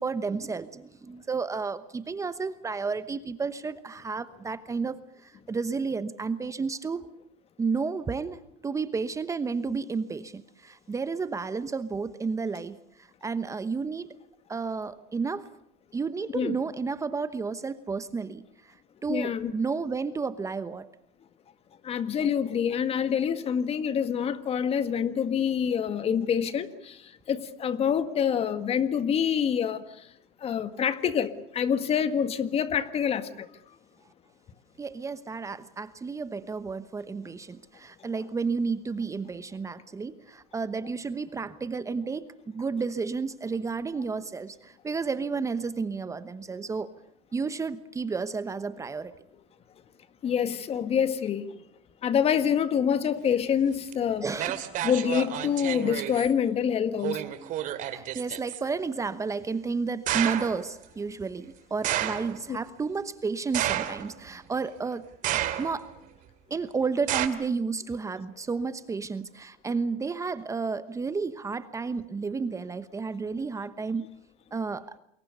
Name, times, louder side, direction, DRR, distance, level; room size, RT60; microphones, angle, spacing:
voice 1, 0.0-7.1 7.6-14.1 14.5-15.5 15.9-18.7 19.0-20.9 34.8-46.9 47.3-49.1 54.2-54.6 57.9-65.1 65.3-65.9 66.5-74.0 74.5-75.0, right 4 dB, 15° right, 13 dB, 1.0 m, -32 dB
voice 2, 19.1-19.5 21.8-30.1 30.4-33.5 50.2-51.6 52.0-54.2 54.8-57.2 62.5-62.6, left 8 dB, 35° left, 12 dB, 1.8 m, -26 dB
sound 1, 53.9-54.0 54.4-56.3 57.0-58.6 60.1-60.6 61.8-62.4 63.5-64.3 65.2-65.9 67.1-67.3, right 12 dB, 50° right, 2.5 m, -30 dB
28.5 x 22.5 x 6.8 m, 0.74 s
supercardioid pair, 120°, 18 cm